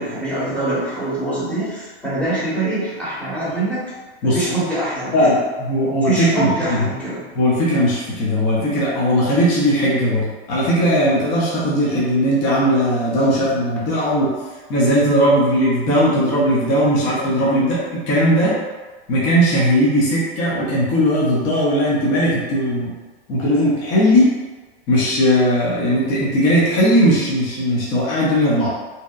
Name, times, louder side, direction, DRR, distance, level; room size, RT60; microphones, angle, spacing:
voice 1, 0.0-3.8 4.2-5.3 6.1-7.2, right 2 dB, 5° left, -11 dB, 0.9 m, -24 dB
voice 2, 5.1-6.9 7.4-14.3 14.7-18.6 19.1-22.9 23.3-24.3 24.9-28.7, equal, 35° left, -6 dB, 0.6 m, -18 dB
2.7 x 2.1 x 2.3 m, 1.3 s
supercardioid pair, 140°, 33 cm